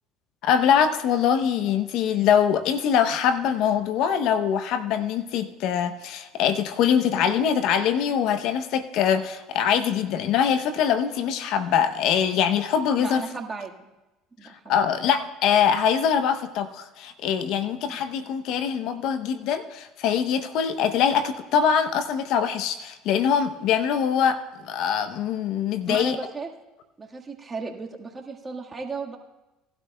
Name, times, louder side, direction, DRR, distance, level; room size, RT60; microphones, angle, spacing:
voice 1, 0.4-13.2 14.7-26.2, left 8 dB, 65° left, 11 dB, 0.7 m, -23 dB
voice 2, 13.0-13.9 14.4-14.9 17.8-18.0 25.9-26.5 27.0-29.2, right 4 dB, 25° right, 1 dB, 1.5 m, -35 dB
18.5 x 12.0 x 2.2 m, 1.0 s
supercardioid pair, 80°, 0 cm